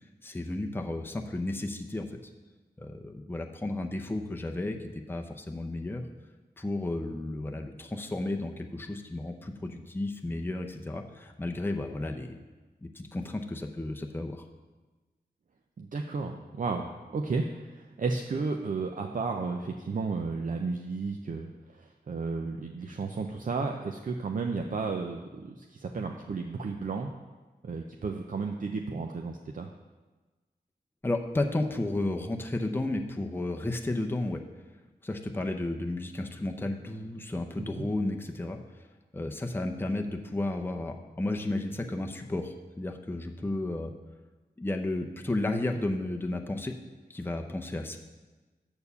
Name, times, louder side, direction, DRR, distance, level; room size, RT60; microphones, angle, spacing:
voice 1, 0.2-2.1 2.8-6.0 6.6-12.4 12.8-14.4 31.0-34.4 35.0-38.6 39.1-43.9 44.6-46.7 47.1-48.0, left 2 dB, 10° left, 3 dB, 0.6 m, -33 dB
voice 2, 15.8-27.1 27.6-29.7 37.6-37.9, right 4 dB, 50° right, 3 dB, 0.6 m, -33 dB
6.9 x 4.5 x 6.9 m, 1.2 s
wide cardioid pair, 70°, 17 cm